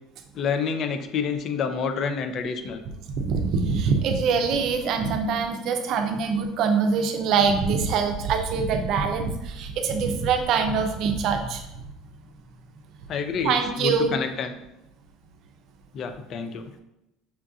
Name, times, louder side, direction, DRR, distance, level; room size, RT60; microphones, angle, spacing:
voice 1, 0.3-2.8 13.1-14.5 15.9-16.6, left 6 dB, 45° left, 8 dB, 0.4 m, -28 dB
voice 2, 3.1-11.6 13.4-14.2, right 5 dB, 60° right, 5 dB, 0.5 m, -24 dB
5.6 x 2.6 x 2.4 m, 0.87 s
supercardioid pair, 120°, 0 cm